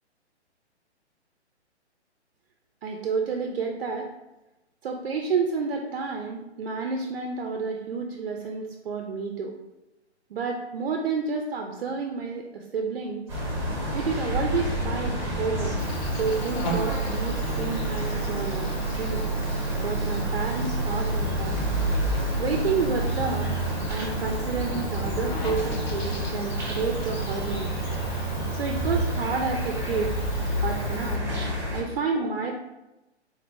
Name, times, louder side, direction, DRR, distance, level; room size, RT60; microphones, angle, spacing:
voice 1, 2.8-4.1 4.8-9.5 10.3-13.3 13.9-15.8 16.1-19.2 19.8-21.6 22.4-23.6 23.9-27.8 28.5-30.1 30.6-31.3 31.5-32.5, right 5 dB, 55° right, 2 dB, 0.5 m, -30 dB
sound 1, 13.3-31.8, right 1 dB, 5° right, 0.9 m, -28 dB
Insect, 15.8-31.2, equal, 40° left, 0.9 m, -39 dB
3.9 x 3.3 x 2.6 m, 0.99 s
figure-of-eight pair, 130°, 35 cm